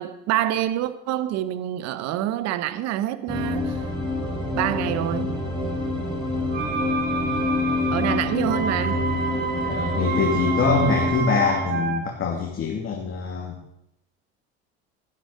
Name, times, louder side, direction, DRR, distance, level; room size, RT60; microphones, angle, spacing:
voice 1, 0.0-3.7 4.5-5.4 7.9-9.1, right 12 dB, 60° right, 1.1 m, -26 dB
sound 1, 3.3-11.2, left 2 dB, 15° right, 5.9 m, -27 dB
sound 2, 6.5-12.0, right 5 dB, 30° right, 2.0 m, -29 dB
voice 2, 9.6-13.6, left 5 dB, 45° left, 2.6 m, -24 dB
12.0 x 11.5 x 6.6 m
hypercardioid pair, 75°, 29 cm